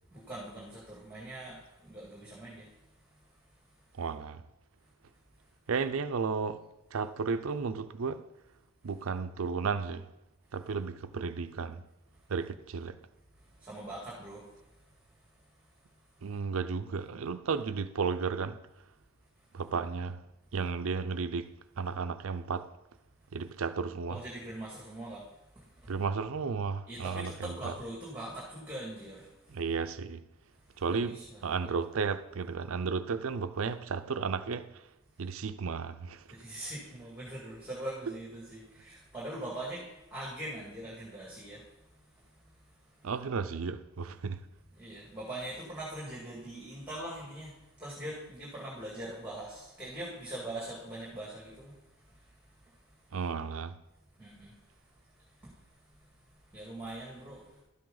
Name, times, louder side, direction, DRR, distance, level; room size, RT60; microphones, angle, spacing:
voice 1, 0.1-2.7 13.6-14.5 24.1-25.3 25.6-25.9 26.9-29.6 30.9-31.4 36.3-41.6 42.2-42.5 44.8-51.7 52.1-52.2 54.2-54.5 55.4-55.6 56.5-57.5, right 1 dB, 5° right, 2.1 m, -42 dB
voice 2, 4.0-4.4 5.7-6.6 6.9-8.2 8.8-10.1 10.5-11.8 12.3-13.0 16.2-18.6 19.5-20.2 20.5-21.5 21.8-22.7 23.3-24.2 25.9-27.7 29.5-30.2 30.8-34.9 35.2-36.2 43.0-44.4 53.1-53.8, right 5 dB, 70° right, 0.5 m, -33 dB
12.5 x 7.6 x 3.9 m
head